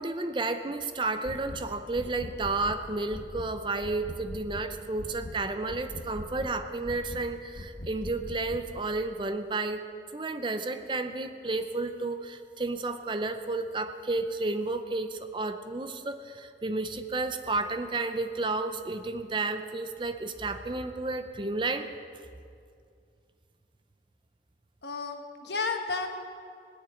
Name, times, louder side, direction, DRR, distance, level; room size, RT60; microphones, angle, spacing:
voice 1, 0.0-9.8 10.1-21.9, right 3 dB, 25° right, 9 dB, 0.6 m, -32 dB
sound 1, 1.2-1.6 1.9-2.8 3.1-3.5 3.8-4.7 5.0-5.4 5.7-6.6 6.9-7.3 7.6-8.7, left 1 dB, 50° left, 1.3 m, -41 dB
voice 2, 24.8-26.1, left 4 dB, 70° left, 5 dB, 1.3 m, -32 dB
18.0 x 6.9 x 9.1 m, 2.3 s
head